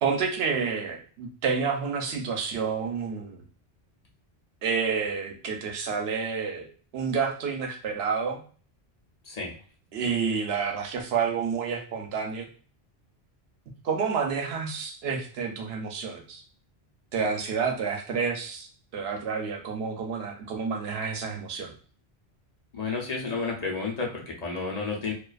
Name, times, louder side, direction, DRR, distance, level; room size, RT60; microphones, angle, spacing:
voice 1, 0.0-3.4 4.6-6.7 6.9-8.4 9.9-12.5 13.8-16.4 17.1-18.7 18.9-21.7, right 5 dB, 75° right, 3 dB, 0.8 m, -29 dB
voice 2, 22.7-25.1, left 4 dB, 45° left, -2 dB, 0.7 m, -31 dB
2.4 x 2.3 x 2.3 m, 0.40 s
omnidirectional pair, 1.1 m